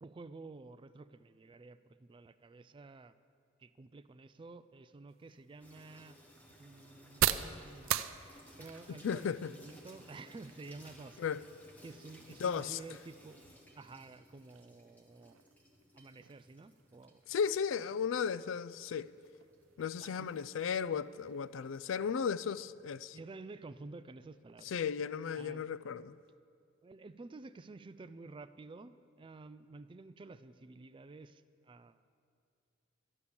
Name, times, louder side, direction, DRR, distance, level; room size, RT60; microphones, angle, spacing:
voice 1, 0.0-3.1 3.6-6.2 6.6-8.0 8.6-11.2 11.8-13.4 13.7-15.4 15.9-17.2 20.2-20.3 23.1-24.7 25.4-25.7 26.8-32.0, right 3 dB, 25° right, 0.3 m, -51 dB
sound 1, 5.1-22.7, right 11 dB, 85° right, 0.4 m, -43 dB
Water tap faucet / Sink (filling or washing), 5.6-23.1, equal, 10° left, 1.4 m, -60 dB
voice 2, 8.9-9.5 11.2-11.4 12.4-12.8 17.3-19.1 19.8-23.2 24.7-26.2, left 7 dB, 75° left, 0.4 m, -35 dB
11.5 x 11.0 x 7.0 m
head